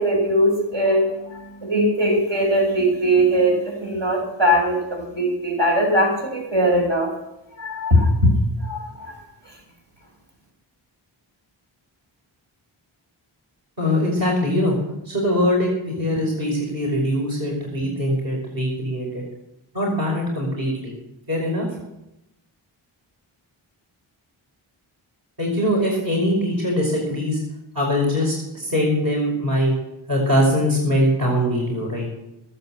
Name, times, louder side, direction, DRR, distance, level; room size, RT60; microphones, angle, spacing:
voice 1, 0.0-7.1 7.6-8.3 8.6-9.1, equal, 60° right, -1 dB, 6.6 m, -20 dB
voice 2, 13.8-14.8 15.1-19.2 19.7-20.9 21.3-21.7 25.4-27.4 27.7-29.7 30.1-32.1, equal, 45° right, -2 dB, 5.6 m, -22 dB
20.0 x 8.4 x 7.9 m, 0.89 s
cardioid pair, 45°, 49 cm